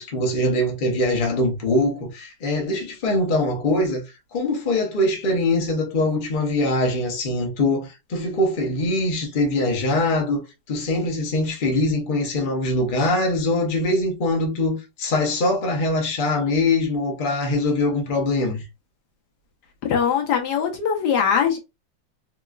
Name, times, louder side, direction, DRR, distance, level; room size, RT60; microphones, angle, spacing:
voice 1, 0.0-4.0 4.3-10.4 10.7-18.6, left 2 dB, 40° left, 0.8 m, -22 dB
voice 2, 19.8-21.6, left 7 dB, 70° left, 1.2 m, -21 dB
3.0 x 3.0 x 2.3 m
omnidirectional pair, 2.0 m